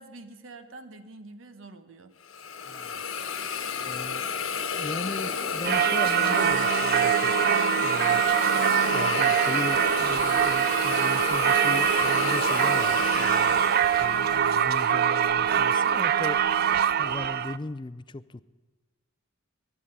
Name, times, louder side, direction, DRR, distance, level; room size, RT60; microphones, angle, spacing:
voice 1, 0.0-2.1, right 2 dB, 70° right, 9 dB, 1.2 m, -46 dB
Hiss, 2.3-14.4, left 5 dB, 85° left, 1.2 m, -31 dB
voice 2, 2.7-3.0 3.8-4.3 4.6-7.3 7.8-8.2 8.9-16.4 17.0-18.4, left 2 dB, 25° left, 15 dB, 0.4 m, -38 dB
Singing / Church bell, 5.6-17.6, right 9 dB, 50° right, 0.4 m, -23 dB
11.0 x 11.0 x 10.0 m, 1.3 s
head